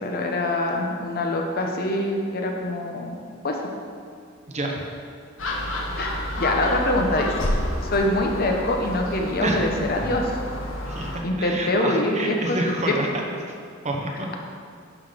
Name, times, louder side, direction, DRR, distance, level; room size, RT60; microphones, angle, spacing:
voice 1, 0.0-3.2 3.4-3.6 6.0-7.3 7.9-10.3 11.2-12.6 12.9-13.0, left 1 dB, 50° left, 2 dB, 0.9 m, -24 dB
voice 2, 4.5-4.9 9.4-9.6 10.9-13.2 13.8-14.3, right 1 dB, 35° right, 0 dB, 0.9 m, -28 dB
Gull seagull, 5.4-11.2, left 1 dB, 90° left, 1.0 m, -29 dB
10.5 x 4.0 x 5.0 m, 2.2 s
head